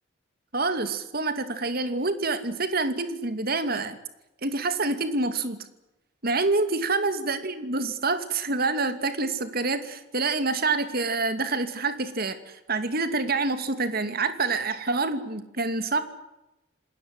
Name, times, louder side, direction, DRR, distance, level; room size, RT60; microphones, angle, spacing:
voice 1, 0.5-4.0 4.4-5.7 6.2-16.0, right 3 dB, 50° right, 10 dB, 2.6 m, -27 dB
28.0 x 20.0 x 7.8 m, 0.94 s
head